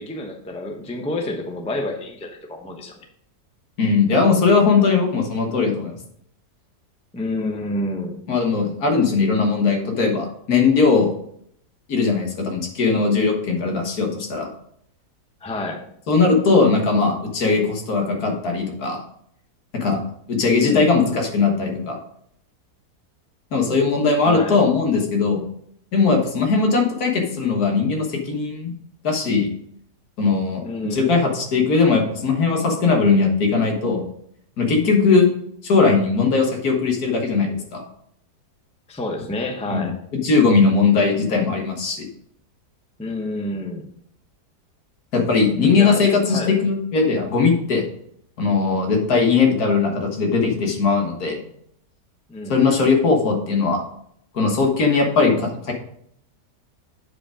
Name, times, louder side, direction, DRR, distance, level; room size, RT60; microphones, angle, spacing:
voice 1, 0.0-2.9 7.1-8.2 15.4-15.8 20.6-21.0 24.2-24.6 30.6-31.2 38.9-39.9 43.0-43.8 45.7-46.0 46.3-46.6 52.3-52.6, left 2 dB, 5° left, 2 dB, 0.7 m, -28 dB
voice 2, 3.8-5.9 8.3-11.1 11.9-14.5 16.1-19.0 19.7-20.0 20.3-22.0 23.5-25.4 25.9-28.7 29.0-29.5 30.2-30.7 30.9-34.0 34.6-35.3 35.6-37.8 39.7-39.9 40.2-42.1 45.1-47.8 48.4-51.4 52.5-53.8 54.3-55.7, left 4 dB, 65° left, 2 dB, 1.8 m, -19 dB
8.2 x 5.0 x 5.0 m, 0.70 s
omnidirectional pair, 1.8 m